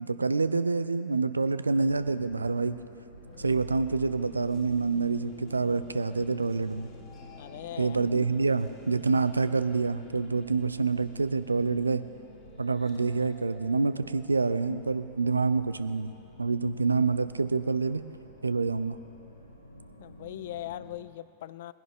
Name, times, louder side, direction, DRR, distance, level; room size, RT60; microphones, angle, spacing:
voice 1, 0.0-2.8 3.4-6.9 7.8-12.0 12.6-18.0 18.4-19.0, right 4 dB, 80° right, 13 dB, 0.4 m, -27 dB
sound 1, 1.8-21.0, equal, 80° left, 1.3 m, -51 dB
sound 2, 3.2-15.0, left 2 dB, 30° left, 1.7 m, -51 dB
voice 2, 7.4-8.0 20.0-21.7, left 13 dB, 55° left, 17 dB, 0.3 m, -40 dB
21.0 x 11.0 x 3.6 m, 2.6 s
figure-of-eight pair, 90°, 0 cm